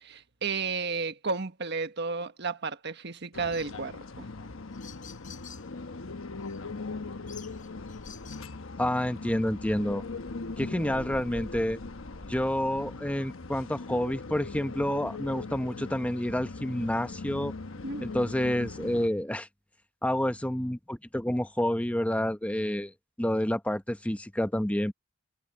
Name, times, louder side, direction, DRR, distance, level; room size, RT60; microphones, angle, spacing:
voice 1, 0.0-4.3 17.8-18.3, right 4 dB, 60° right, 1.4 m, -33 dB
sound 1, 3.3-19.1, left 3 dB, 85° left, 1.1 m, -40 dB
sound 2, 3.5-3.8 4.4-4.5 4.7-5.7 6.4-6.6 7.3-8.5, left 9 dB, 40° left, 5.6 m, -49 dB
voice 2, 8.8-10.0 10.6-11.8 12.3-17.5 18.0-19.5 20.0-22.9 23.2-24.9, left 1 dB, 5° left, 0.9 m, -29 dB
head